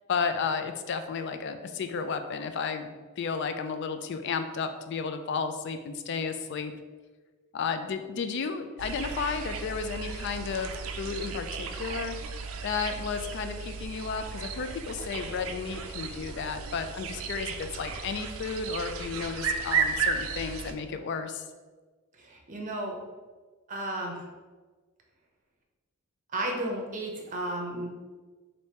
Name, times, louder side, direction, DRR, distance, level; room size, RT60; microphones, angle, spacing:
voice 1, 0.1-2.9 3.2-6.7 7.5-12.2 12.6-21.4, left 5 dB, 55° left, 8 dB, 0.3 m, -33 dB
sound 1, 8.8-20.7, right 5 dB, 70° right, 0.4 m, -34 dB
voice 2, 22.2-23.0 23.7-24.2 26.3-27.9, right 1 dB, 35° right, 1 dB, 0.7 m, -33 dB
3.4 x 2.7 x 4.2 m, 1.4 s
head